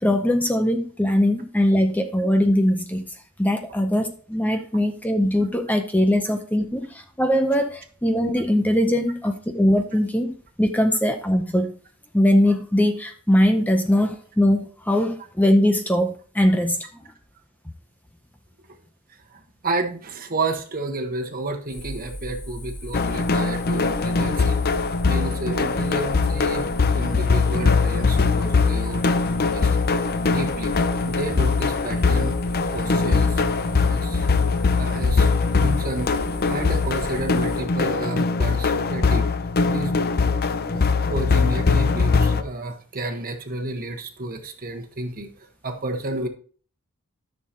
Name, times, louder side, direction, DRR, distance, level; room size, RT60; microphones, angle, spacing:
voice 1, 0.0-11.7 12.1-16.8, left 1 dB, 5° left, 6 dB, 0.6 m, -21 dB
voice 2, 19.3-24.6 25.0-26.6 26.9-29.8 30.2-30.7 31.0-32.4 32.7-34.3 34.8-36.1 36.5-39.3 39.6-40.0 40.5-46.3, right 2 dB, 40° right, 4 dB, 1.3 m, -31 dB
sound 1, 21.7-37.6, equal, 90° left, 4.1 m, -36 dB
sound 2, 22.9-42.4, left 4 dB, 45° left, 0.6 m, -21 dB
13.5 x 6.6 x 2.9 m, 0.43 s
head